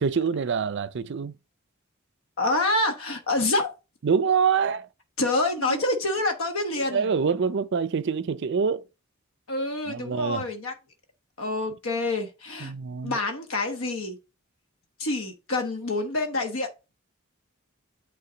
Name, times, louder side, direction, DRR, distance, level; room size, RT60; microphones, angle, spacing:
voice 1, 0.0-1.3 4.0-4.9 5.6-5.8 6.8-8.8 9.9-10.4 12.6-13.2, right 6 dB, 60° right, 0.5 m, -25 dB
voice 2, 2.4-3.7 5.2-7.1 9.5-10.7 11.4-12.7 13.0-14.2 15.0-16.7, left 2 dB, 80° left, 1.1 m, -27 dB
8.6 x 3.8 x 3.9 m
head